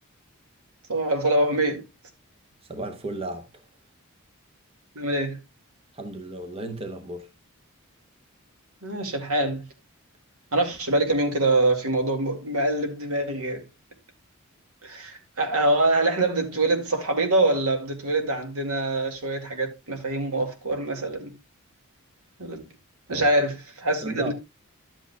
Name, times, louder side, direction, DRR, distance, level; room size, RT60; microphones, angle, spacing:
voice 1, 0.9-1.9 5.0-5.4 8.8-9.6 10.5-13.6 14.8-21.3 22.4-22.6 23.1-24.3, right 2 dB, 85° right, 2.2 m, -24 dB
voice 2, 2.6-3.6 5.9-7.3 23.1-23.3 24.0-24.3, right 2 dB, 25° right, 0.9 m, -34 dB
11.5 x 8.3 x 2.3 m
head